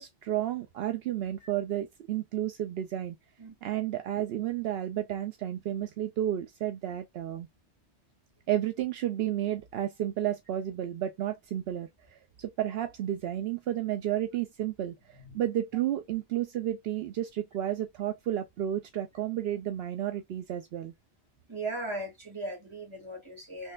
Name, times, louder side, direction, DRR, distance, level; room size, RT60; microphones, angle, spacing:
voice 1, 0.0-3.2 3.6-7.5 8.5-20.9, right 12 dB, 75° right, 0.8 m, -32 dB
voice 2, 21.5-23.7, right 2 dB, 30° right, 2.2 m, -37 dB
3.8 x 3.2 x 2.3 m
omnidirectional pair, 1.0 m